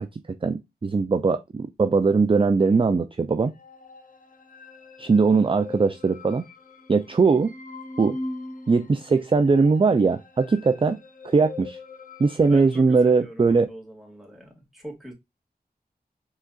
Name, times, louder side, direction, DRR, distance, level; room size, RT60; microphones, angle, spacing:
voice 1, 0.0-3.5 5.0-6.5 6.9-7.5 8.0-8.2 8.7-11.0 11.2-11.8 12.2-13.7, right 4 dB, 30° right, 0.4 m, -20 dB
sound 1, 3.5-12.8, left 2 dB, 55° left, 0.9 m, -41 dB
voice 2, 12.5-15.1, equal, ahead, 2.1 m, -42 dB
4.8 x 4.0 x 2.4 m
wide cardioid pair, 50°, 17 cm